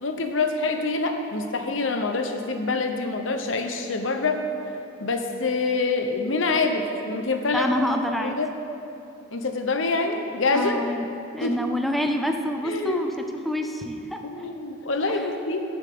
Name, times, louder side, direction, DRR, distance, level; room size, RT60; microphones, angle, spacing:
voice 1, 0.0-4.4 5.0-7.8 8.2-8.5 9.3-10.8 11.4-11.6 12.6-13.0 14.2-15.6, left 3 dB, 70° left, 5 dB, 0.9 m, -26 dB
voice 2, 7.5-8.4 10.5-11.1 11.3-14.5 15.1-15.3, left 1 dB, ahead, 4 dB, 0.5 m, -27 dB
15.0 x 7.3 x 3.7 m, 2.7 s
head